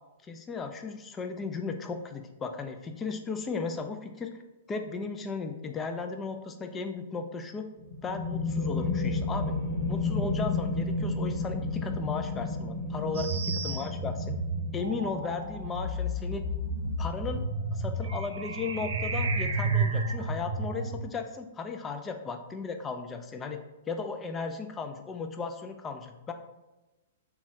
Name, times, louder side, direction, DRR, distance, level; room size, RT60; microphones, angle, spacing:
voice 1, 0.2-4.3 4.7-7.7 8.0-9.5 9.9-14.4 14.7-16.5 17.0-17.4 17.7-23.6 23.9-26.3, left 4 dB, 20° left, 6 dB, 0.3 m, -35 dB
sound 1, 7.8-19.2, left 3 dB, 50° left, 0.9 m, -33 dB
sound 2, 13.1-21.0, right 2 dB, 70° right, 0.3 m, -31 dB
3.1 x 2.3 x 2.9 m, 1.1 s
hypercardioid pair, 115°, 0 cm